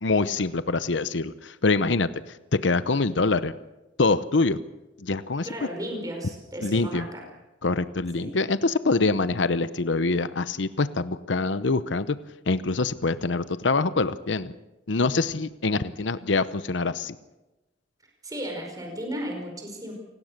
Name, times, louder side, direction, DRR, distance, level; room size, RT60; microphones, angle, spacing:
voice 1, 0.0-3.5 4.0-4.6 5.0-5.5 6.6-7.1 7.6-12.2 12.5-14.5 14.9-17.2, left 3 dB, 75° left, 14 dB, 0.8 m, -25 dB
voice 2, 5.4-7.2 8.2-8.3 18.2-19.9, equal, 20° right, 1 dB, 5.0 m, -34 dB
28.0 x 19.5 x 6.7 m, 1.0 s
head